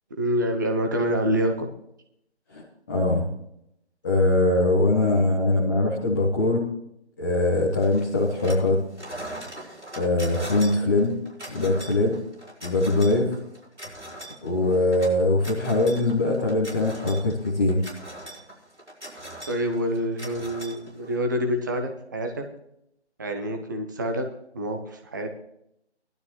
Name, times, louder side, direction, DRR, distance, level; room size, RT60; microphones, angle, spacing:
voice 1, 0.2-1.7 19.5-22.5 23.2-24.3 24.5-25.3, equal, 15° right, 4 dB, 0.9 m, -27 dB
voice 2, 2.5-3.3 4.0-6.6 7.2-8.8 10.0-11.1 11.5-12.2 12.6-13.4 14.4-17.8, left 2 dB, 15° left, -4 dB, 1.1 m, -22 dB
sound 1, 7.8-8.7 8.9-21.3, right 1 dB, 85° right, 5.4 m, -40 dB
17.5 x 12.0 x 3.1 m, 0.77 s
figure-of-eight pair, 150°, 34 cm